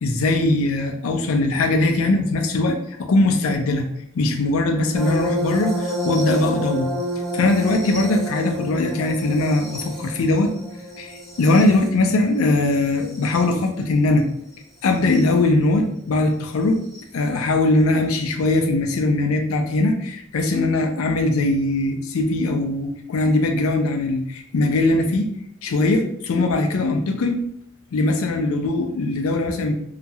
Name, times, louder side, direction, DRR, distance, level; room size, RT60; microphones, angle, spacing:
voice 1, 0.0-3.9 4.1-6.9 7.3-10.5 11.0-14.3 14.8-16.8 17.1-25.3 25.6-27.4 27.9-29.7, left 2 dB, 85° left, 5 dB, 0.4 m, -20 dB
sound 1, 5.0-13.6 15.0-15.2 16.9-17.0, equal, ahead, 0.5 m, -29 dB
2.9 x 2.3 x 2.7 m, 0.71 s
head